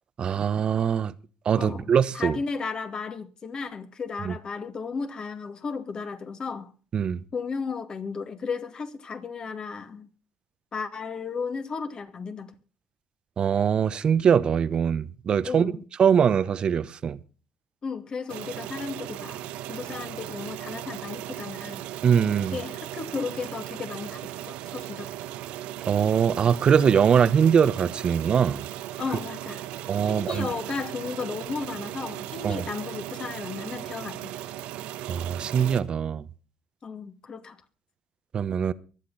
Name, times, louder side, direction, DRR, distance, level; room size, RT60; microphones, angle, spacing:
voice 1, 0.2-1.1 1.4-2.4 4.2-4.3 6.9-7.2 13.4-15.7 16.0-17.2 22.0-22.6 25.9-28.6 29.9-30.5 32.4-32.6 35.1-36.2 38.3-38.7, right 7 dB, 50° right, 0.9 m, -22 dB
voice 2, 1.6-6.7 7.3-10.1 10.7-12.5 15.4-15.8 17.8-19.4 19.7-21.8 22.5-25.1 29.0-29.6 30.0-34.4 36.8-37.6, left 5 dB, 40° left, 2.3 m, -34 dB
sound 1, 18.3-35.8, right 13 dB, 80° right, 1.1 m, -37 dB
24.0 x 8.4 x 4.1 m
supercardioid pair, 70°, 2 cm